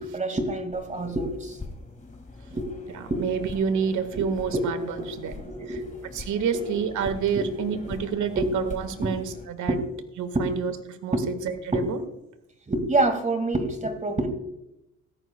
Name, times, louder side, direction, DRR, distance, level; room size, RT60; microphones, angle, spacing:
voice 1, 0.0-1.6 2.4-2.7 3.1-3.2 4.1-4.2 5.0-5.1 5.5-5.9 6.5-6.6 7.4-7.5 7.8-7.9 8.4-8.5 9.0-9.2 9.7-9.8 10.3-10.5 11.1-11.3 12.7-14.3, right 2 dB, 25° right, 6 dB, 2.2 m, -27 dB
sound 1, 0.7-9.5, left 3 dB, 25° left, 2.1 m, -43 dB
voice 2, 3.2-5.3 6.1-9.8 10.2-12.0, right 7 dB, 75° right, 9 dB, 1.7 m, -28 dB
17.0 x 14.0 x 2.3 m, 0.88 s
cardioid pair, 90°, 30 cm